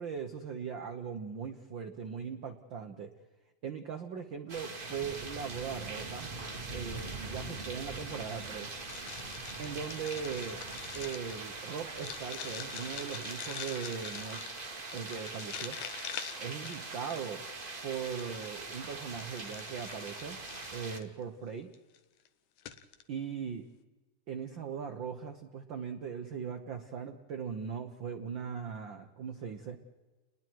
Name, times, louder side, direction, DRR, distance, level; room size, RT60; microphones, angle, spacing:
voice 1, 0.0-3.1 3.6-6.3 6.7-8.7 9.6-10.6 10.9-14.4 14.9-15.8 16.4-17.4 17.8-20.4 20.7-21.7 23.1-23.7 24.3-29.8, right 7 dB, 80° right, 6 dB, 1.0 m, -39 dB
sound 1, 4.5-21.0, right 3 dB, 45° right, 0.6 m, -42 dB
sound 2, 8.8-17.4 17.9-21.1 21.7-22.0 22.3-22.4 22.6-23.0, left 10 dB, 70° left, 2.3 m, -45 dB
30.0 x 21.0 x 4.7 m, 1.2 s
omnidirectional pair, 3.8 m